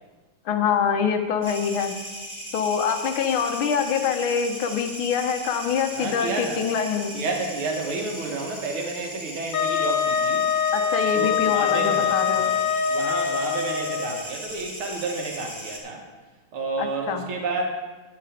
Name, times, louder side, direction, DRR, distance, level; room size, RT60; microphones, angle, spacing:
voice 1, 0.4-1.9 2.5-7.2 10.7-12.4 16.8-17.2, left 7 dB, 75° left, 6 dB, 1.7 m, -25 dB
sound 1, 1.4-15.8, equal, 5° right, 2.4 m, -38 dB
voice 2, 6.0-6.6 7.1-10.5 11.1-16.0 16.5-17.6, right 3 dB, 70° right, 1 dB, 2.3 m, -31 dB
Wind instrument woodwind instrument, 9.5-14.2, left 7 dB, 55° left, 1.0 m, -24 dB
9.2 x 9.2 x 5.0 m, 1.3 s
omnidirectional pair, 2.4 m